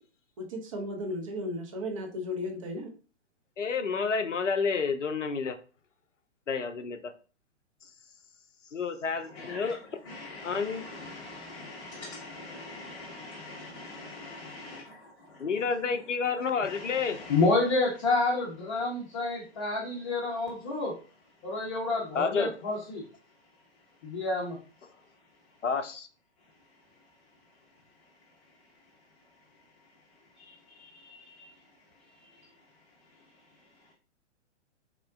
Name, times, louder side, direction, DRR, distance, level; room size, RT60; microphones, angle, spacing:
voice 1, 0.4-2.9, left 1 dB, 30° right, 4 dB, 0.5 m, -35 dB
voice 2, 3.6-5.5 6.5-7.1 8.7-10.0 10.4-10.8 15.4-17.2 22.1-22.5 25.6-26.1, left 5 dB, 90° left, 9 dB, 0.5 m, -30 dB
voice 3, 9.3-9.8 10.0-15.5 16.6-21.0 21.4-23.0 24.0-24.6 30.4-31.5 32.2-32.5, left 3 dB, 25° left, -4 dB, 0.6 m, -32 dB
3.6 x 2.1 x 2.3 m, 0.38 s
figure-of-eight pair, 120°, 36 cm